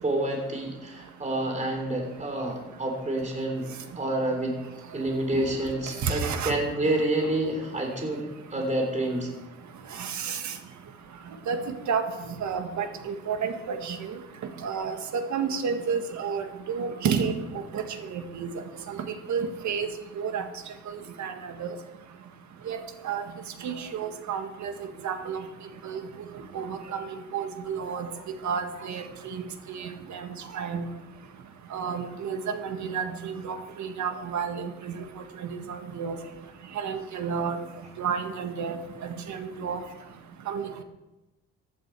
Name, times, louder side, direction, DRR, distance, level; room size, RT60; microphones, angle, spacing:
voice 1, 0.0-3.7 4.0-4.6 4.9-9.3, right 1 dB, 25° right, 2 dB, 3.6 m, -28 dB
voice 2, 6.0-6.5 10.0-10.5 11.5-11.6 11.9-12.0 12.4-14.0 14.6-14.9 15.3-17.3 17.7-17.8 18.1-18.5 18.9-19.0 19.3-19.9 20.2-20.4 21.2-21.7 22.7-22.8 23.0-23.2 23.6-24.7 25.0-25.4 25.8-26.0 26.5-27.0 27.3-28.1 28.4-30.3 30.5-30.8 31.7-34.9 35.9-36.2 36.8-37.6 38.0-38.8 39.3-39.8 40.5-40.8, right 6 dB, 70° right, 7 dB, 1.7 m, -30 dB
15.0 x 10.5 x 4.7 m, 1.0 s
cardioid pair, 90°, 30 cm